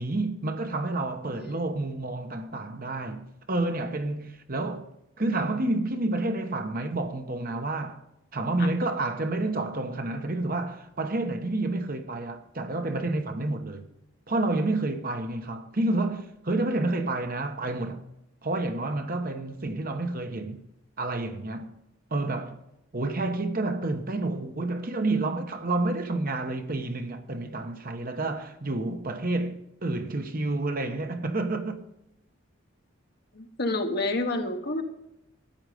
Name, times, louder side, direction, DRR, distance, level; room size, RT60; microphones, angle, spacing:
voice 1, 0.0-4.9 5.2-8.0 8.3-13.8 14.3-18.0 18.4-20.6 21.0-21.7 22.1-22.6 22.9-31.8, right 2 dB, 45° right, 1.1 m, -29 dB
voice 2, 33.3-34.8, left 2 dB, 50° left, 1.4 m, -29 dB
13.0 x 8.9 x 5.1 m
head